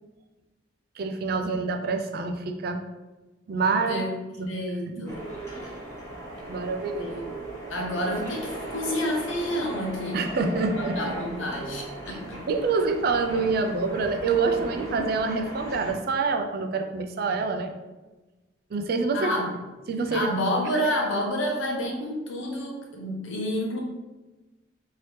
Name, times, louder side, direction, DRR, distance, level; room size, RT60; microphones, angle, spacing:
voice 1, 1.0-2.8 3.5-4.0 4.4-4.5 4.9-5.0 5.6-5.7 6.5-7.1 10.1-11.1 12.5-17.7 18.7-19.3 19.9-20.3, right 4 dB, 50° right, 5 dB, 0.3 m, -26 dB
voice 2, 4.5-5.2 7.0-7.3 7.7-10.2 10.7-12.4 19.1-19.5 20.1-23.8, equal, 85° left, 0 dB, 0.8 m, -29 dB
sound 1, 5.1-15.9, right 1 dB, 15° left, 0.9 m, -37 dB
3.2 x 2.7 x 3.1 m, 1.1 s
head